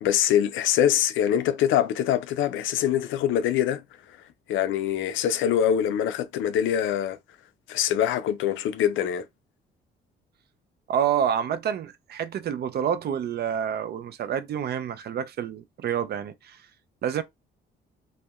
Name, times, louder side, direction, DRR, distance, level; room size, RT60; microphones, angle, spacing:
voice 1, 0.0-3.8 4.5-7.2 7.7-9.2, left 10 dB, 80° left, 0.4 m, -24 dB
voice 2, 10.9-16.6 17.0-17.2, right 9 dB, 55° right, 0.4 m, -28 dB
2.6 x 2.1 x 2.3 m
cardioid pair, 90°, 20 cm